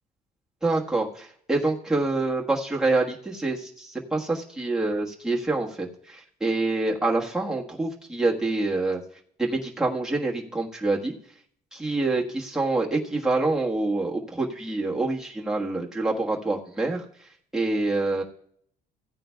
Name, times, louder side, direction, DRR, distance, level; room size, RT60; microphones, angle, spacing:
voice 1, 0.6-9.0 9.4-11.1 11.7-17.0 17.5-18.2, right 2 dB, 5° right, -3 dB, 1.4 m, -26 dB
15.5 x 9.0 x 2.3 m, 0.63 s
cardioid pair, 110°, 17 cm